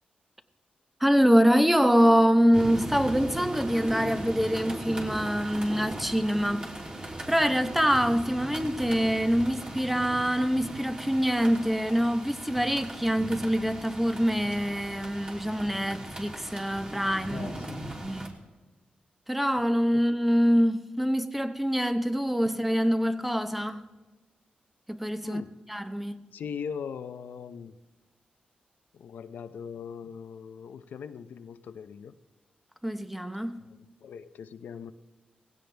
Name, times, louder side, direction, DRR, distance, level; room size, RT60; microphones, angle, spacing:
voice 1, 1.0-6.7 7.0-17.5 18.0-18.3 19.3-23.8 24.9-25.4 25.7-26.3 32.8-33.7, equal, 5° right, 0.9 m, -25 dB
sound 1, 2.5-18.3, right 1 dB, 25° right, 3.0 m, -38 dB
voice 2, 17.3-17.8 19.9-20.0 25.2-25.5 26.3-27.8 28.9-32.2 34.0-34.9, left 7 dB, 80° left, 0.7 m, -40 dB
19.0 x 16.0 x 3.4 m
cardioid pair, 100°, 3 cm